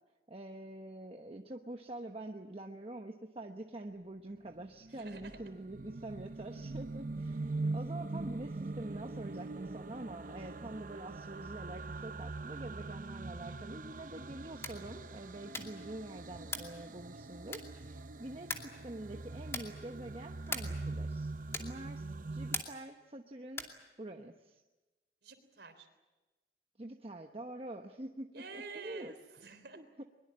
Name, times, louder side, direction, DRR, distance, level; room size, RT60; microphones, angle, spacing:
voice 1, 0.3-21.3 21.6-23.7 24.0-24.6 26.8-29.1 29.7-30.0, right 1 dB, 35° right, 3 dB, 1.1 m, -46 dB
sound 1, 4.6-22.6, right 3 dB, 50° right, 0.7 m, -42 dB
voice 2, 4.9-5.4 18.4-18.5 25.2-25.9 28.3-29.8, right 4 dB, 70° right, 8 dB, 3.6 m, -49 dB
sound 2, 14.5-14.9 15.5-15.9 16.5-16.8 17.5-17.9 18.5-18.8 19.5-19.8 20.5-20.9 21.5-21.8 22.5-22.9 23.5-23.8, left 3 dB, 15° left, 2.5 m, -41 dB
22.5 x 22.0 x 8.8 m, 1.1 s
head